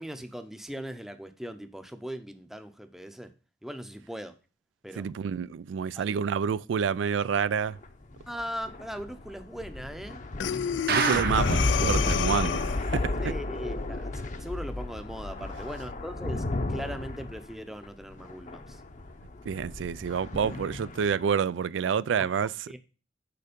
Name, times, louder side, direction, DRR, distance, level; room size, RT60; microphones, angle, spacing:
voice 1, 0.0-3.3 3.6-4.4 4.8-5.1 5.9-6.2 8.3-10.2 13.2-18.8 22.7-22.8, equal, ahead, 0.6 m, -39 dB
voice 2, 5.0-7.8 10.9-12.6 12.9-13.3 19.5-22.8, right 6 dB, 85° right, 0.4 m, -28 dB
sound 1, 7.7-21.3, left 2 dB, 40° left, 0.7 m, -32 dB
Breathing, 10.4-13.0, left 9 dB, 70° left, 0.3 m, -30 dB
sound 2, 10.9-11.7 12.1-12.2 12.4-12.5 13.0-13.1, right 6 dB, 55° right, 0.9 m, -27 dB
6.8 x 4.8 x 5.1 m
head